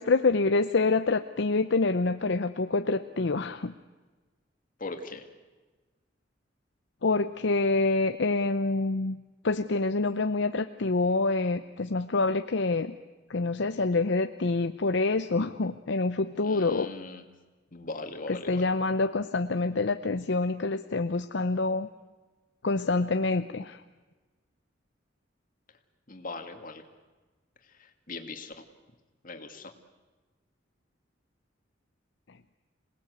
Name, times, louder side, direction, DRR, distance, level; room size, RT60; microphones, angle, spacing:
voice 1, 0.0-3.7 7.0-9.2 9.4-13.0 13.3-16.9 18.5-21.9 22.6-23.8, left 3 dB, 65° left, 9 dB, 0.7 m, -26 dB
voice 2, 4.8-5.3 16.4-17.2 17.7-18.7 26.1-26.8 27.7-28.6 29.2-29.7, left 3 dB, 45° left, 5 dB, 2.2 m, -40 dB
26.5 x 19.0 x 8.0 m, 1.3 s
head